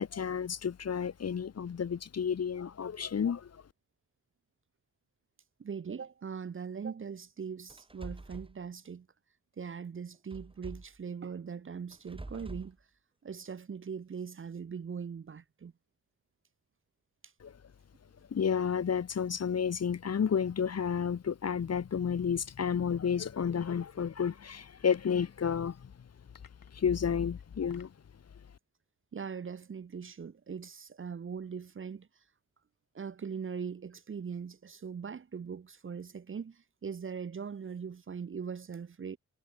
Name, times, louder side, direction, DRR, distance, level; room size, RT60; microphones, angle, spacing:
voice 1, 0.0-3.6 17.4-17.5 18.3-25.9 26.7-27.9, left 7 dB, 45° left, 0.9 m, -31 dB
voice 2, 5.6-9.1 9.6-12.8 13.2-15.7 29.1-32.1 32.9-39.2, right 6 dB, 35° right, 0.7 m, -41 dB
sound 1, 7.7-8.5 10.3-11.0 11.9-12.7, right 2 dB, 15° right, 3.7 m, -45 dB
sound 2, 24.9-25.3 26.3-26.9 27.4-28.1, left 7 dB, 75° left, 3.8 m, -59 dB
wide cardioid pair, 160°, 34 cm